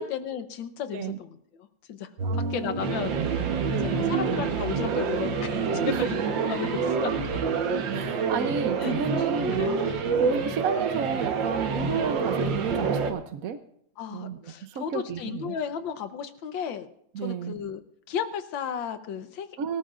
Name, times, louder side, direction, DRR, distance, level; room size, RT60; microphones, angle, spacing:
voice 1, 0.0-6.2 6.5-7.1 8.8-8.9 9.2-9.3 9.5-9.8 10.4-10.6 14.0-16.9 17.2-17.8 18.1-19.5, left 8 dB, 80° left, 9 dB, 1.7 m, -34 dB
voice 2, 2.2-2.7 3.7-4.2 5.9-6.1 7.9-9.8 10.2-13.6 14.1-15.5 17.1-17.6 19.6-19.8, right 6 dB, 60° right, 8 dB, 1.0 m, -32 dB
sound 1, 2.2-13.1, right 5 dB, 75° right, 1.9 m, -27 dB
23.5 x 14.0 x 2.5 m, 0.70 s
omnidirectional pair, 2.1 m